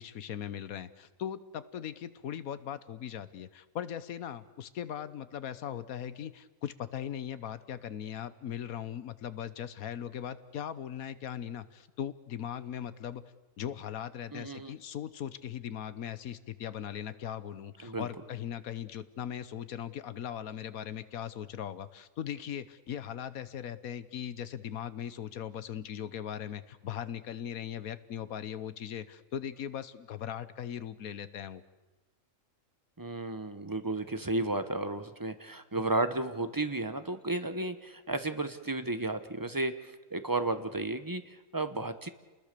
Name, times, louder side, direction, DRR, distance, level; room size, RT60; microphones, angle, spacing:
voice 1, 0.0-13.2 13.6-31.6, left 9 dB, 80° left, 14 dB, 1.4 m, -39 dB
voice 2, 14.3-14.7 17.8-18.1 33.0-39.8 40.1-42.1, right 2 dB, 15° right, 10 dB, 0.9 m, -33 dB
28.5 x 20.5 x 6.7 m, 1.2 s
omnidirectional pair, 1.5 m